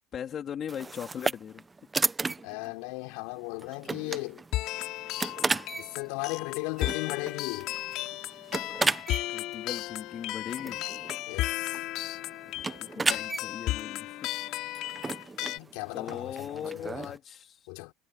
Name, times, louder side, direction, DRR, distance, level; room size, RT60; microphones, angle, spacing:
voice 1, 0.1-1.6 9.3-10.8 12.5-14.7 15.9-17.6, left 8 dB, 40° left, 3.4 m, -39 dB
sound 1, 0.7-17.2, right 3 dB, 15° right, 1.0 m, -35 dB
voice 2, 2.4-4.4 5.8-7.7 11.3-11.8 15.5-17.1 17.7-17.9, left 28 dB, 80° left, 5.6 m, -36 dB
sound 2, 4.5-15.6, left 17 dB, 65° left, 4.6 m, -34 dB
supercardioid pair, 115°, 0 cm